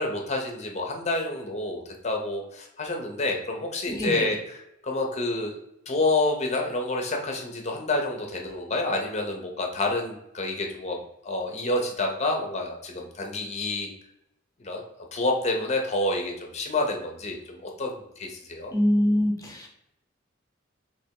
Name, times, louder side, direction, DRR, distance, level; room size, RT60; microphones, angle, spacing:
voice 1, 0.0-5.6 5.9-13.9 14.6-14.8 15.1-18.7, left 2 dB, 35° left, 1 dB, 0.7 m, -28 dB
voice 2, 3.9-4.3 18.7-19.7, equal, 20° left, -1 dB, 1.1 m, -24 dB
3.4 x 3.0 x 4.5 m, 0.84 s
head